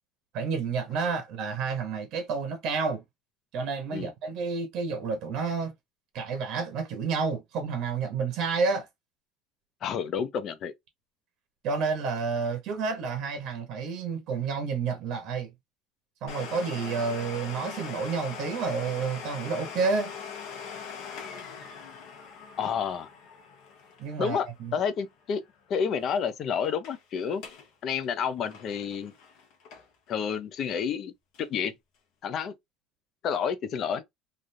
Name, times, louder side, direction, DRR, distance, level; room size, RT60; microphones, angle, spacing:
voice 1, 0.3-3.0 3.5-5.7 6.1-8.9 11.6-15.5 16.2-20.1 24.0-24.7, right 5 dB, 50° right, 0.8 m, -30 dB
voice 2, 9.8-10.7 22.6-23.1 24.2-24.5 24.7-25.4 25.7-27.5 27.8-29.1 30.1-31.1 31.4-31.7 32.2-32.5 33.2-34.0, left 7 dB, 40° left, 0.5 m, -29 dB
Domestic sounds home sounds, 16.3-25.7 26.0-26.1 26.6-27.0 27.3-27.7 28.0-30.1 30.6-30.7 31.3-31.4, left 6 dB, 60° left, 1.1 m, -42 dB
3.3 x 2.5 x 2.6 m
cardioid pair, 165°, 0 cm